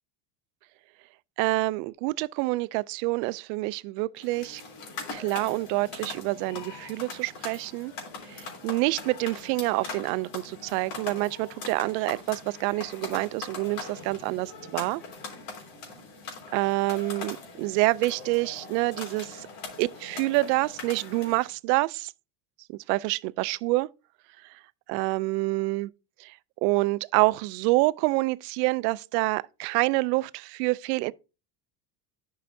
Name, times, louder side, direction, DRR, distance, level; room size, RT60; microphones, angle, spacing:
voice 1, 1.4-4.6 5.1-7.9 8.3-15.0 16.5-19.5 19.8-22.1 22.9-23.9 24.9-25.9 26.2-26.4 26.6-31.1, right 22 dB, 90° right, 0.6 m, -27 dB
sound 1, 4.2-21.5, left 4 dB, 70° left, 3.5 m, -41 dB
11.0 x 5.6 x 2.6 m
cardioid pair, 135°, 48 cm